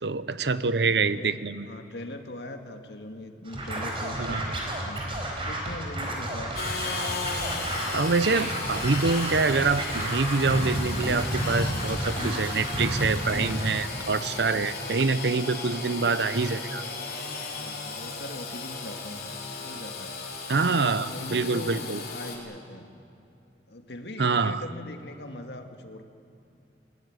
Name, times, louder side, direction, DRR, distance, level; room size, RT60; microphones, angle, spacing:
voice 1, 0.0-1.7 4.2-4.4 7.9-16.8 20.5-22.0 24.2-24.6, right 4 dB, 75° right, 14 dB, 0.8 m, -26 dB
voice 2, 0.6-1.4 1.7-5.1 5.4-6.6 15.7-15.9 17.5-20.1 20.6-22.9 23.7-26.0, left 1 dB, 75° left, 5 dB, 1.9 m, -41 dB
Scratching (performance technique), 3.5-13.8, right 1 dB, 30° right, 4.2 m, -31 dB
Engine / Sawing, 6.6-22.4, left 3 dB, 60° left, 4.0 m, -35 dB
sound 1, 8.5-8.6 9.0-9.1 9.5-9.6 10.0-10.1 10.5-10.6 11.0-11.1 11.5-11.6 12.0-12.1 12.5-12.6 13.0-13.1 13.5-13.6 14.0-14.1 14.5-14.6 15.0-15.1, right 2 dB, 10° right, 1.0 m, -45 dB
22.0 x 17.5 x 9.3 m, 2.6 s
head